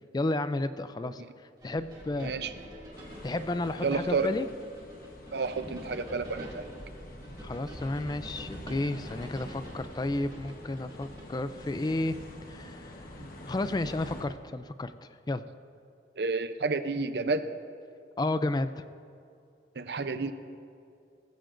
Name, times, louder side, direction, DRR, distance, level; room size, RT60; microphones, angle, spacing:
voice 1, 0.1-1.2 1.6-2.3 3.2-4.5 7.4-12.2 12.5-13.0 13.5-14.9 15.3-15.4 18.2-18.8, left 2 dB, 25° left, 12 dB, 0.3 m, -32 dB
sound 1, 1.6-11.6, equal, 25° right, 2.4 m, -46 dB
voice 2, 2.2-2.5 3.8-4.3 5.3-6.7 13.2-13.3 16.2-17.5 19.8-20.3, right 4 dB, 65° right, 10 dB, 0.6 m, -30 dB
sound 2, 2.9-14.3, left 1 dB, 50° left, 1.2 m, -46 dB
19.0 x 15.0 x 2.6 m, 2.5 s
head